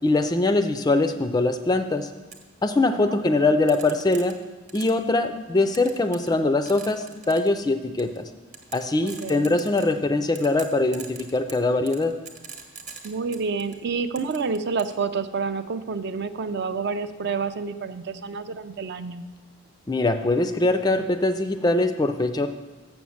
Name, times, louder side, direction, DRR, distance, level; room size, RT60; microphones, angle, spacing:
voice 1, 0.0-2.1 2.6-4.3 4.7-8.3 8.7-12.2 19.9-22.5, left 2 dB, 20° left, 9 dB, 0.3 m, -22 dB
sound 1, 2.3-2.4 3.7-5.1 5.7-6.4 6.7-7.5 8.0-8.2 8.5-10.0 10.3-13.8 14.2-15.0, right 6 dB, 35° right, 0.9 m, -42 dB
voice 2, 9.0-9.6 13.0-19.2, right 5 dB, 50° right, 11 dB, 0.4 m, -29 dB
7.0 x 6.1 x 7.1 m, 1.2 s
head